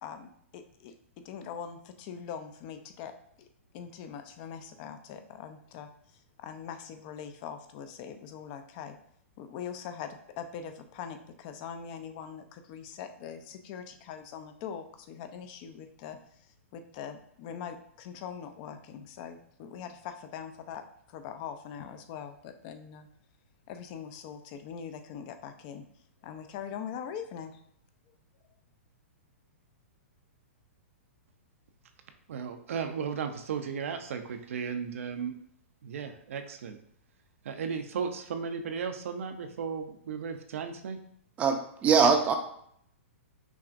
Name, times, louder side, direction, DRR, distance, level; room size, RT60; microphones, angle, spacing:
voice 1, 0.0-0.9 1.2-3.1 3.4-3.5 3.7-9.0 9.4-20.8 21.1-23.1 23.7-25.8 26.2-27.6, left 7 dB, 40° left, 7 dB, 0.4 m, -42 dB
voice 2, 32.3-35.3 35.8-36.8 37.4-41.0, right 6 dB, 75° right, 7 dB, 0.5 m, -35 dB
voice 3, 41.4-42.3, right 5 dB, 20° right, 5 dB, 0.5 m, -22 dB
5.8 x 2.5 x 2.5 m, 0.69 s
hypercardioid pair, 140°, 7 cm